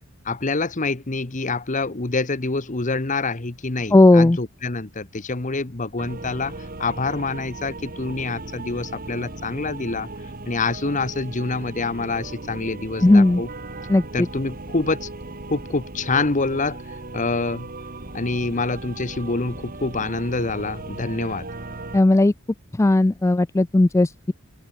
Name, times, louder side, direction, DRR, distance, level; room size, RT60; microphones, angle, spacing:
voice 1, 0.2-10.1 10.4-13.5 14.1-15.1 15.5-16.8 17.1-17.7 18.1-21.5, left 3 dB, 35° left, 1.2 m, -26 dB
voice 2, 3.9-4.4 13.0-13.4 13.9-14.3 21.9-22.3 22.7-24.3, left 2 dB, 15° left, 0.3 m, -16 dB
sound 1, 6.0-22.0, right 2 dB, 45° right, 2.3 m, -37 dB
open air
head